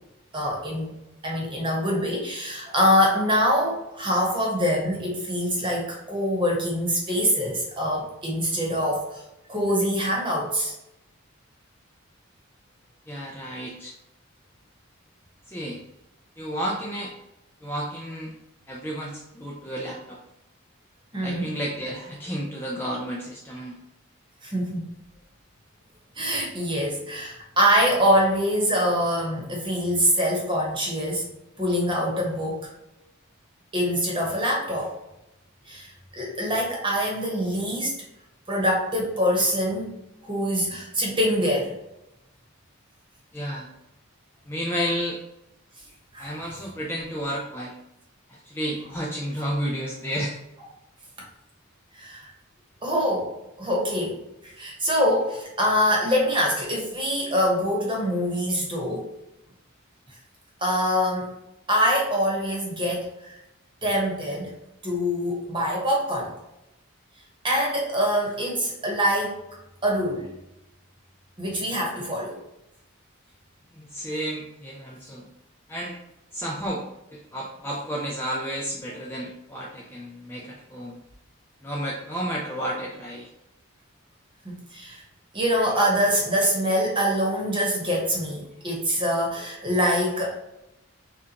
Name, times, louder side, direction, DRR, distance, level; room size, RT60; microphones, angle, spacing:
voice 1, 0.3-0.9 1.2-9.2 9.5-10.7 21.1-21.5 24.4-24.9 26.2-31.3 31.6-32.7 33.7-35.0 35.7-37.9 38.5-39.9 40.2-41.7 46.1-46.4 51.9-52.3 52.8-53.3 53.6-59.1 60.6-61.3 61.7-63.4 63.8-64.5 64.8-66.3 67.4-69.4 69.8-70.3 71.4-72.4 84.4-85.0 85.3-90.3, equal, 25° right, -2 dB, 1.1 m, -24 dB
voice 2, 13.1-13.9 15.5-15.8 16.4-17.1 17.6-18.3 18.7-20.2 21.2-23.7 43.3-43.7 44.5-45.2 46.2-47.7 48.3-50.4 73.8-75.3 75.7-76.0 76.3-76.8 77.1-81.0 81.6-83.3, equal, 10° left, -2 dB, 0.4 m, -31 dB
6.6 x 2.4 x 2.9 m, 0.88 s
head